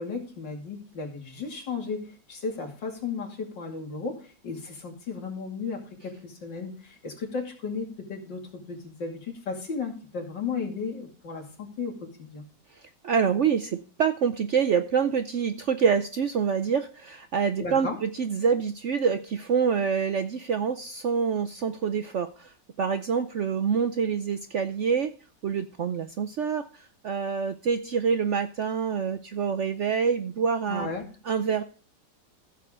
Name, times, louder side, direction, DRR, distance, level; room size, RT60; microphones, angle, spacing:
voice 1, 0.0-8.4 8.7-12.4 17.6-18.0 30.7-31.0, left 4 dB, 90° left, 1 dB, 3.2 m, -34 dB
voice 2, 13.0-25.1 25.4-30.9 31.2-31.6, right 6 dB, 70° right, 10 dB, 0.7 m, -26 dB
15.0 x 6.9 x 3.7 m, 0.37 s
omnidirectional pair, 1.9 m